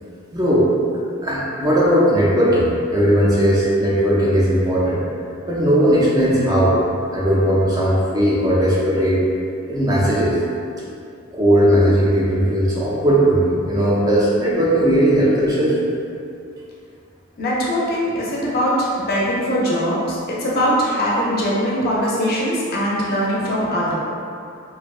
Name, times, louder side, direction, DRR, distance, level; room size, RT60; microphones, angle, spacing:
voice 1, 0.3-0.7 1.2-5.0 5.5-6.8 7.1-9.2 9.7-10.4 11.3-15.8, equal, 20° right, -7 dB, 0.3 m, -17 dB
voice 2, 17.4-23.9, equal, 50° left, -5 dB, 0.5 m, -21 dB
2.5 x 2.1 x 2.3 m, 2.5 s
head